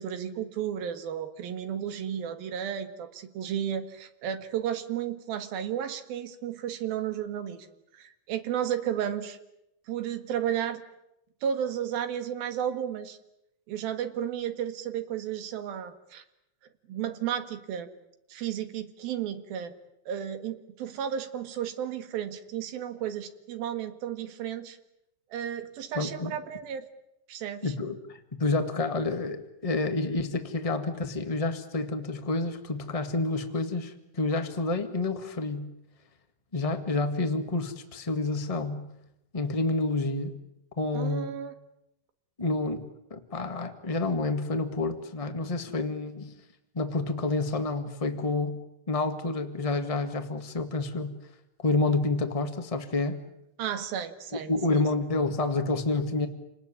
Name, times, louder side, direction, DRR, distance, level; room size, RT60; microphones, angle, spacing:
voice 1, 0.0-7.7 7.9-9.4 9.9-10.8 11.4-13.2 13.7-16.2 16.9-17.9 18.3-19.7 20.1-24.8 25.3-26.9 27.3-27.7 40.9-41.5 53.6-54.8, right 9 dB, 85° right, 9 dB, 3.6 m, -33 dB
voice 2, 25.9-26.3 27.6-35.7 36.5-38.9 39.3-40.4 40.8-41.4 42.4-46.3 46.7-48.6 48.9-51.2 51.6-53.2 54.5-56.3, left 2 dB, 50° left, 6 dB, 0.4 m, -29 dB
28.5 x 20.0 x 9.9 m, 0.84 s
omnidirectional pair, 4.1 m